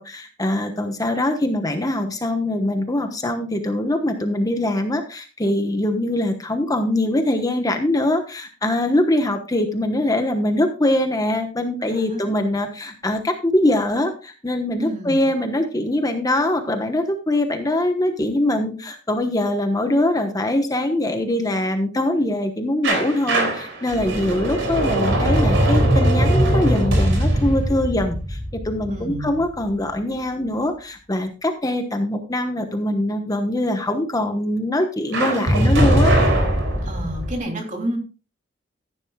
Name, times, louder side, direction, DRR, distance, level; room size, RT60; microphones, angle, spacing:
voice 1, 0.0-36.1, left 1 dB, 20° left, 6 dB, 1.1 m, -22 dB
voice 2, 11.8-12.4 14.8-15.3 28.9-29.4 36.8-38.0, right 1 dB, 45° right, 2 dB, 3.1 m, -30 dB
sound 1, 22.8-29.6 35.1-37.4, right 1 dB, 80° right, 3.8 m, -20 dB
15.0 x 10.5 x 2.3 m, 0.33 s
head